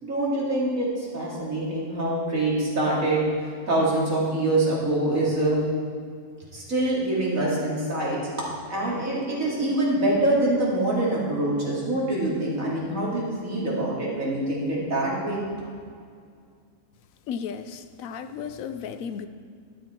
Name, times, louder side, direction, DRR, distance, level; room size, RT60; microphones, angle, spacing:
voice 1, 0.0-3.2 3.7-5.6 6.5-8.2 8.7-15.4, right 1 dB, 85° right, -6 dB, 3.1 m, -25 dB
voice 2, 17.3-19.3, left 7 dB, 90° left, 10 dB, 1.1 m, -34 dB
12.5 x 7.7 x 4.4 m, 2.2 s
omnidirectional pair, 1.4 m